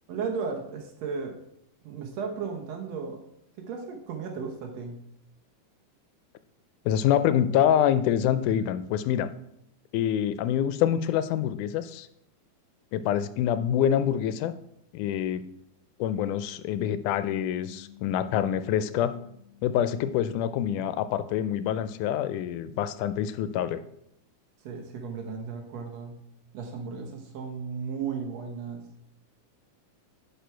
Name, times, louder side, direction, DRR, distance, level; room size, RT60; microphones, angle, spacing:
voice 1, 0.1-1.4 1.8-3.2 3.7-5.0 24.6-26.1 26.5-28.8, right 5 dB, 65° right, 2 dB, 2.0 m, -35 dB
voice 2, 6.9-9.3 9.9-12.1 12.9-14.5 14.9-15.4 16.0-19.1 19.6-23.8, left 10 dB, 85° left, 13 dB, 2.1 m, -26 dB
Bass guitar, 16.7-23.0, left 13 dB, 20° right, 1.4 m, -53 dB
10.0 x 4.7 x 4.5 m, 0.76 s
omnidirectional pair, 3.5 m